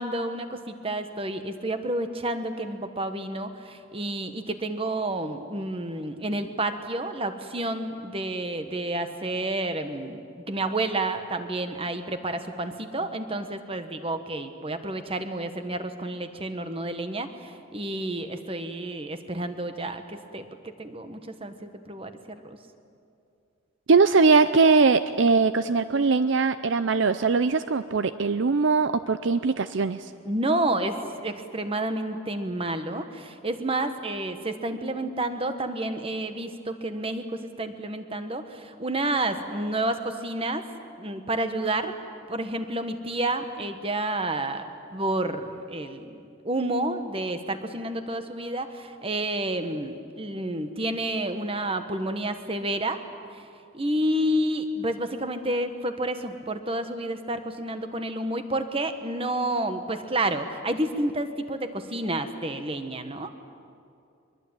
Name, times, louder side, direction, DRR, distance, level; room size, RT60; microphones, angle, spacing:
voice 1, 0.0-22.6 30.2-40.6 41.0-42.0 42.3-44.7 44.9-53.0 53.3-53.4 53.7-63.3, right 1 dB, 25° right, 8 dB, 1.4 m, -30 dB
voice 2, 23.9-30.1, right 4 dB, 60° right, 12 dB, 0.5 m, -21 dB
23.0 x 23.0 x 8.9 m, 2.5 s
head